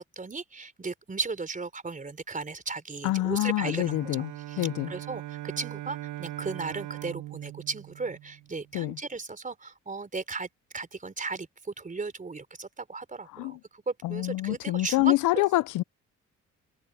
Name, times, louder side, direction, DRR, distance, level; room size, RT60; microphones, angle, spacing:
voice 1, 0.0-10.5 10.7-15.4, right 4 dB, 25° right, 4.1 m, -36 dB
voice 2, 3.0-4.3 4.6-4.9 8.7-9.0 13.3-13.6 14.0-15.8, left 17 dB, 85° left, 0.6 m, -26 dB
Bowed string instrument, 3.6-8.8, right 16 dB, 85° right, 1.1 m, -40 dB
cardioid pair, 90°, 30 cm